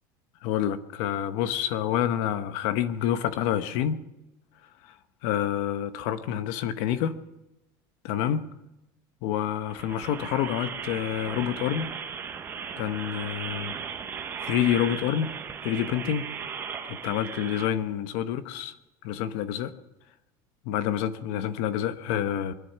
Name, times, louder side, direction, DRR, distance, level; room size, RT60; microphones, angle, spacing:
voice 1, 0.4-4.0 4.8-4.9 5.2-7.2 8.0-8.5 9.2-11.9 12.8-13.8 14.4-15.3 15.6-16.2 16.8-18.7 19.0-19.7 20.6-22.5, left 10 dB, 60° left, 12 dB, 1.0 m, -28 dB
sound 1, 9.7-17.7, right 7 dB, 20° right, 1.2 m, -37 dB
22.5 x 10.5 x 5.7 m, 0.95 s
cardioid pair, 170°, 11 cm